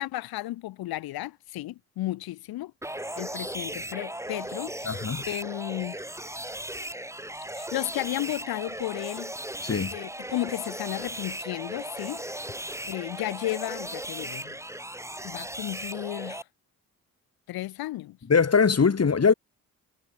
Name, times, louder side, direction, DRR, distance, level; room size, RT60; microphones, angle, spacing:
voice 1, 0.0-2.7 3.2-6.0 7.5-9.3 9.9-12.2 12.9-14.6 15.2-16.4 17.5-18.2, left 16 dB, 90° left, 3.1 m, -33 dB
sound 1, 2.8-16.4, right 1 dB, 10° right, 7.9 m, -37 dB
voice 2, 4.9-5.3 9.6-9.9 18.3-19.3, left 5 dB, 45° left, 5.2 m, -21 dB
supercardioid pair, 60°, 35 cm